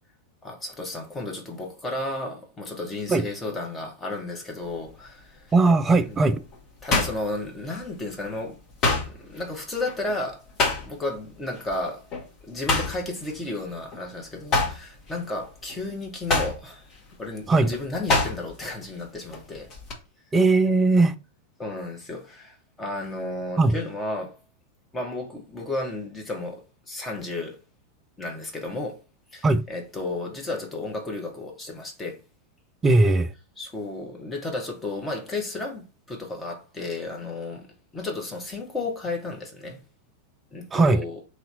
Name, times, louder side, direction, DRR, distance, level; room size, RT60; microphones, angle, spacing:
voice 1, 0.4-5.5 6.1-6.2 6.8-10.4 10.7-12.1 12.4-16.9 17.2-19.7 21.6-24.4 24.9-27.6 28.2-29.0 29.3-32.2 33.6-37.7 37.9-39.8 40.5-41.2, left 2 dB, 15° left, 1.2 m, -33 dB
sound 1, 4.6-5.0 5.5-8.0 8.3-11.2 11.5-11.8 12.1-14.1 14.4-18.7 19.0-19.9, left 3 dB, 35° left, 1.4 m, -27 dB
voice 2, 5.5-6.4 17.5-17.7 20.3-21.1 23.6-23.8 29.4-29.6 32.8-33.3 40.7-41.0, right 3 dB, 20° right, 0.4 m, -19 dB
3.3 x 2.9 x 3.8 m
figure-of-eight pair, 90°, 0 cm